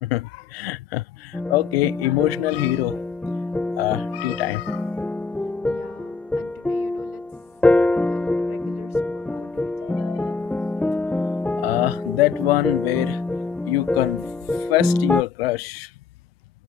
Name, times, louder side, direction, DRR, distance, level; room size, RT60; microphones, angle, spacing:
voice 1, 0.0-3.0 3.8-4.9 9.8-10.3 11.6-13.2 13.6-15.9, left 19 dB, 45° left, 0.6 m, -24 dB
sound 1, 1.3-15.2, left 2 dB, 5° left, 1.0 m, -25 dB
voice 2, 5.4-10.1, left 10 dB, 75° left, 7.9 m, -47 dB
hypercardioid pair, 125°, 44 cm